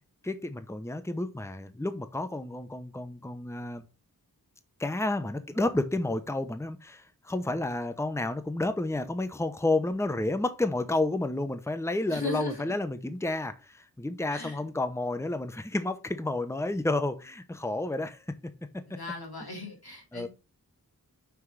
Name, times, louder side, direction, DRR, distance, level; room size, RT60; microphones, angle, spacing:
voice 1, 0.2-3.8 4.8-18.2 20.1-20.3, left 2 dB, 5° left, 0.9 m, -30 dB
voice 2, 12.1-12.6 14.3-14.6 18.9-20.3, left 2 dB, 85° left, 3.2 m, -37 dB
5.9 x 4.7 x 6.2 m
wide cardioid pair, 45°, 37 cm